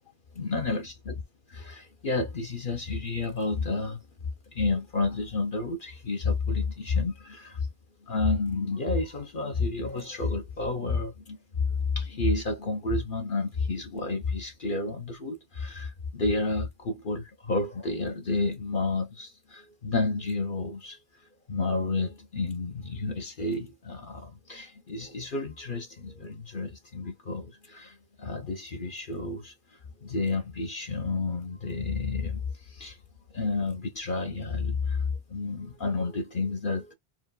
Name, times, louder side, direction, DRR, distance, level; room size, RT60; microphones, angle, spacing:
voice 1, 0.3-1.1 1.5-7.7 8.0-21.0 21.5-33.0 33.3-36.9, left 3 dB, 55° left, 1.0 m, -30 dB
4.6 x 2.3 x 3.8 m
omnidirectional pair, 1.1 m